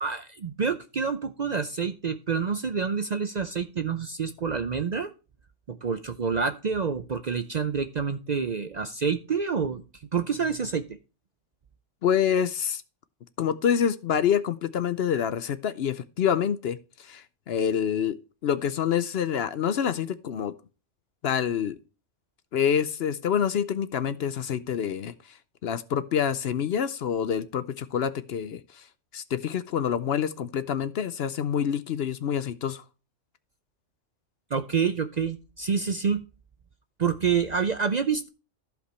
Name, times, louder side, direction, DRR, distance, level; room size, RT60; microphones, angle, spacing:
voice 1, 0.0-5.1 5.7-9.8 10.1-10.8 34.5-36.2 37.0-38.3, right 6 dB, 45° right, 0.6 m, -27 dB
voice 2, 12.0-12.8 13.4-18.2 18.4-20.5 21.2-21.8 22.5-25.1 25.6-28.6 29.1-32.8, left 8 dB, 60° left, 0.8 m, -27 dB
14.5 x 5.2 x 3.2 m
omnidirectional pair, 1.3 m